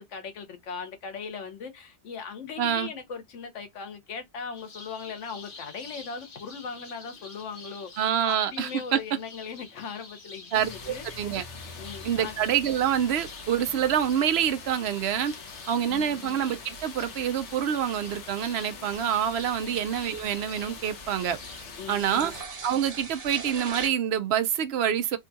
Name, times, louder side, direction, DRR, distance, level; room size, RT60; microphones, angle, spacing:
voice 1, 0.0-11.4 11.7-12.3 15.9-16.3 19.7-19.8 21.8-22.3, left 6 dB, 90° left, 1.2 m, -39 dB
voice 2, 2.6-2.9 8.0-9.0 10.5-11.4 12.0-15.3 15.7-21.4 21.9-22.3 22.6-25.2, right 9 dB, 65° right, 0.8 m, -26 dB
sound 1, 4.5-22.1, left 3 dB, 50° left, 1.1 m, -49 dB
sound 2, 10.5-22.4, left 4 dB, 75° left, 1.2 m, -44 dB
sound 3, 18.9-23.9, right 4 dB, 40° right, 0.7 m, -42 dB
3.6 x 2.3 x 2.7 m
omnidirectional pair, 1.2 m